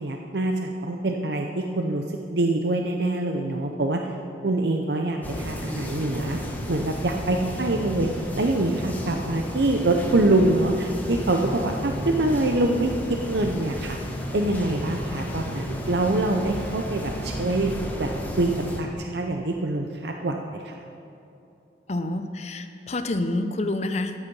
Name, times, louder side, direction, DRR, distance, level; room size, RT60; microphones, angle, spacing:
voice 1, 0.0-4.0 4.4-6.4 6.7-8.1 8.4-14.0 14.3-17.7 18.0-18.1 18.4-18.5 18.8-20.8, right 2 dB, 70° right, 3 dB, 0.7 m, -25 dB
sound 1, 5.2-18.8, equal, 10° left, 1.2 m, -32 dB
voice 2, 21.9-24.1, left 2 dB, 40° left, 8 dB, 0.6 m, -28 dB
13.5 x 8.3 x 5.4 m, 2.8 s
head